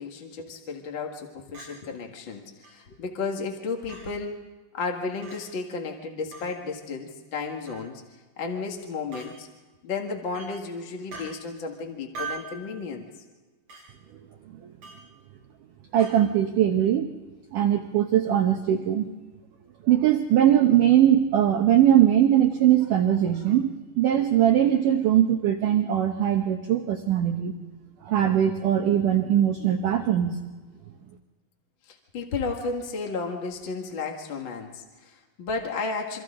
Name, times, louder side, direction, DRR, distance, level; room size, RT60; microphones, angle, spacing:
voice 1, 0.0-4.4 4.7-8.0 8.4-9.5 9.8-13.1 31.9-36.2, left 4 dB, 55° left, 2 dB, 1.3 m, -33 dB
Chink clink, 1.5-1.7 2.6-2.7 3.9-4.0 5.2-5.4 6.3-6.5 7.7-7.9 9.1-9.3 10.3-10.5 11.1-11.3 12.1-12.5 13.7-13.8 14.8-15.0 16.0-16.2, right 4 dB, 45° right, 9.5 m, -39 dB
voice 2, 15.9-17.1 17.5-19.1 19.8-27.5 28.0-30.4, right 11 dB, 75° right, 4 dB, 2.0 m, -21 dB
28.0 x 25.0 x 3.8 m, 1.3 s
omnidirectional pair, 5.1 m